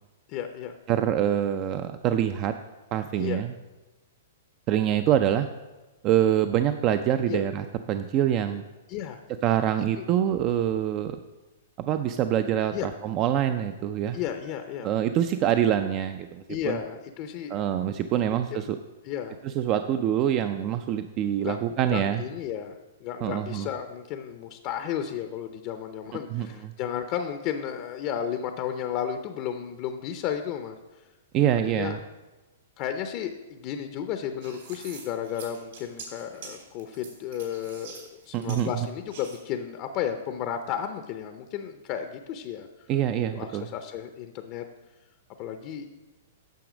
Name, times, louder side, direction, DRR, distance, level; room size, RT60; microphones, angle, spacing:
voice 1, 0.3-0.7 3.2-3.4 7.3-7.4 8.9-9.2 10.0-10.1 12.7-12.9 14.1-14.9 16.5-17.6 18.3-18.7 19.0-19.4 21.4-21.6 21.9-22.7 23.0-31.1 31.7-32.0 32.8-42.7 43.3-44.6 45.4-45.9, left 9 dB, 40° left, 7 dB, 0.6 m, -33 dB
voice 2, 0.9-2.5 2.9-3.5 4.7-5.5 6.0-8.6 9.4-11.1 11.8-14.2 14.8-16.8 17.5-18.8 19.4-22.2 23.2-23.7 26.3-26.7 31.3-32.0 38.3-38.7 42.9-43.7, right 10 dB, 35° right, 9 dB, 0.4 m, -25 dB
sound 1, 34.4-39.4, right 5 dB, 65° right, 3.2 m, -45 dB
9.2 x 6.2 x 5.0 m, 1.1 s
hypercardioid pair, 140°, 0 cm